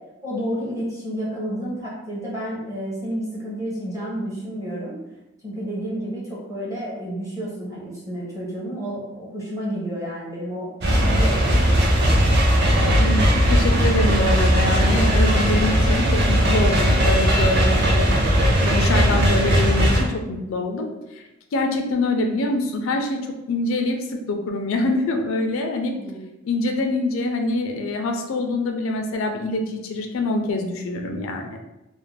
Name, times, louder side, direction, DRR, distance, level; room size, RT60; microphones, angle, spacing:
voice 1, 0.2-5.0 5.4-10.7 11.0-12.2 25.9-26.3, equal, 15° right, -6 dB, 0.6 m, -30 dB
sound 1, 10.8-20.0, equal, 55° right, 0.5 m, -18 dB
voice 2, 12.9-18.1 18.6-20.9 21.2-21.3 21.5-23.2 23.5-24.0 24.3-25.9 26.4-31.6, left 2 dB, 80° left, 4 dB, 0.4 m, -24 dB
2.4 x 2.0 x 3.1 m, 0.97 s
head